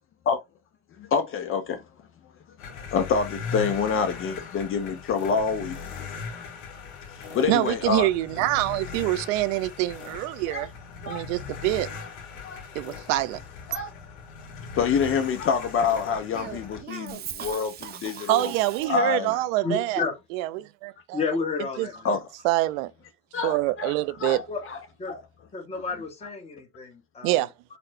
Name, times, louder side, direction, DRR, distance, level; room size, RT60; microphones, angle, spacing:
voice 1, 1.0-1.8 2.6-5.8 7.1-8.1 10.5-10.7 11.0-11.2 11.5-11.7 12.0-12.1 12.4-12.6 13.7-13.9 14.8-18.5 18.9-19.4 22.0-22.2 23.3-23.9 24.2-24.4 24.7-24.8 25.1-25.2, left 6 dB, 35° left, 0.5 m, -27 dB
sound 1, 2.6-16.8, left 5 dB, 65° left, 1.4 m, -39 dB
voice 2, 7.5-10.7 11.1-11.9 12.7-13.4 18.3-20.0 20.3-21.2 21.8-22.2 22.4-22.9 23.4-24.4 27.2-27.5, right 17 dB, 80° right, 0.5 m, -25 dB
Cough, 16.3-19.3, right 9 dB, 25° right, 0.4 m, -39 dB
voice 3, 19.6-20.1 21.1-21.9 24.5-24.6 25.0-25.1 25.5-27.4, left 4 dB, 15° left, 0.9 m, -30 dB
4.1 x 2.1 x 2.6 m
supercardioid pair, 115°, 39 cm